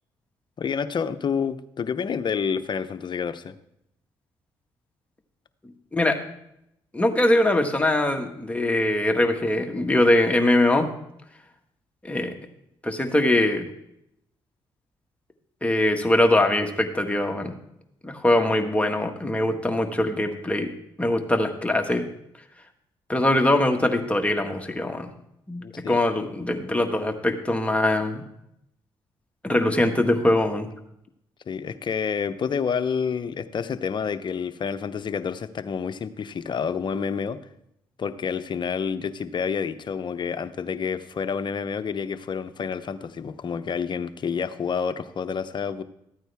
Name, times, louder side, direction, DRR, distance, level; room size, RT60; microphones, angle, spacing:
voice 1, 0.6-3.6 25.6-26.0 31.5-37.4 38.0-45.8, left 6 dB, 50° left, 11 dB, 0.7 m, -29 dB
voice 2, 6.9-10.9 12.0-12.3 12.8-13.6 15.6-17.5 18.0-20.7 21.0-22.1 23.1-25.1 25.5-28.2 29.4-30.7, left 1 dB, 10° left, 4 dB, 1.6 m, -22 dB
13.5 x 9.1 x 3.5 m, 0.77 s
supercardioid pair, 60°, 10 cm